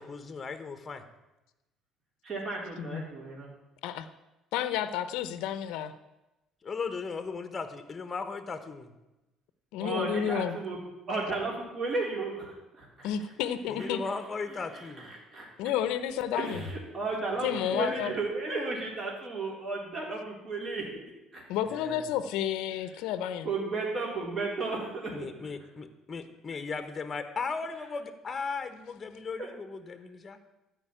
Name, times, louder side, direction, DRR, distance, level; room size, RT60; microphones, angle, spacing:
voice 1, 0.0-1.0 6.6-8.9 13.7-15.1 17.6-17.8 21.7-22.1 25.1-30.4, left 4 dB, 20° left, 9 dB, 1.2 m, -37 dB
voice 2, 2.2-3.5 9.8-10.8 11.1-13.1 14.0-14.1 14.5-15.5 16.3-20.9 21.3-21.4 23.4-25.3 29.4-29.5, right 3 dB, 35° right, -3 dB, 3.9 m, -34 dB
voice 3, 4.5-5.9 9.7-10.6 13.0-14.0 15.6-16.6 17.4-18.1 21.5-23.5, left 10 dB, 85° left, 12 dB, 0.8 m, -31 dB
13.5 x 5.3 x 9.1 m, 0.99 s
cardioid pair, 140°, 0 cm